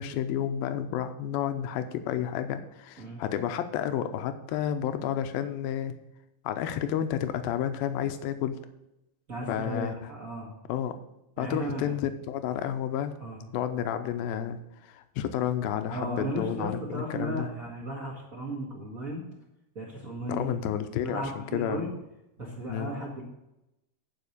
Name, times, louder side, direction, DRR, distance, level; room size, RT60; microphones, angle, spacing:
voice 1, 0.0-5.9 6.4-8.6 9.5-9.9 10.7-11.0 11.4-13.1 13.5-14.6 14.8-17.5 20.3-21.9 22.7-22.9, left 10 dB, 80° left, 9 dB, 2.5 m, -31 dB
voice 2, 9.3-10.5 11.4-11.9 13.2-13.4 15.9-19.2 19.7-20.5 21.0-21.9 22.4-23.2, right 1 dB, 35° right, -3 dB, 1.5 m, -35 dB
10.5 x 5.3 x 6.6 m, 0.89 s
omnidirectional pair, 4.3 m